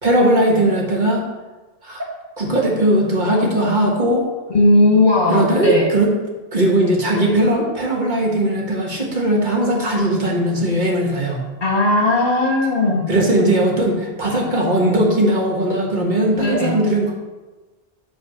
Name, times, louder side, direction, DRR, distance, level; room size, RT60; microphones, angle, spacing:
voice 1, 0.0-1.2 1.8-2.1 2.4-4.2 5.3-6.1 6.5-11.4 13.1-17.1, right 1 dB, 45° right, -2 dB, 2.0 m, -18 dB
voice 2, 4.5-5.9 11.6-13.1 16.3-16.7, left 2 dB, 50° left, -2 dB, 2.2 m, -17 dB
9.3 x 3.9 x 6.5 m, 1.2 s
omnidirectional pair, 1.1 m